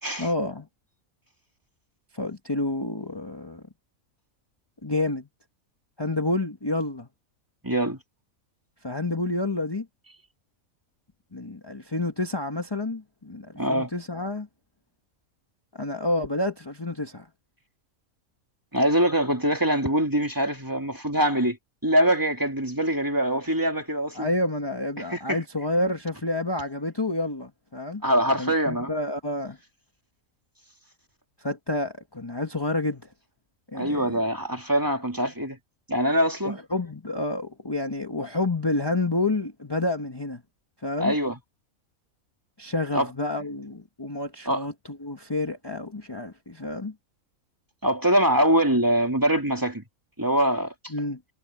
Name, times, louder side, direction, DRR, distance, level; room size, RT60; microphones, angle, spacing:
voice 1, 0.2-0.7 2.1-3.6 4.8-5.3 6.0-7.1 8.8-9.9 11.3-14.5 15.7-17.3 24.1-28.0 28.4-29.6 31.4-33.0 33.7-34.2 36.4-40.4 40.8-41.1 42.6-46.9 50.9-51.2, left 2 dB, 20° left, 1.4 m, -29 dB
voice 2, 7.6-8.0 13.6-13.9 18.7-21.6 21.8-24.3 25.0-25.4 28.0-28.9 33.7-35.6 35.9-36.6 41.0-41.4 42.9-43.1 44.5-44.7 47.8-49.8 50.2-50.7, equal, 15° right, 2.7 m, -23 dB
omnidirectional pair, 1.5 m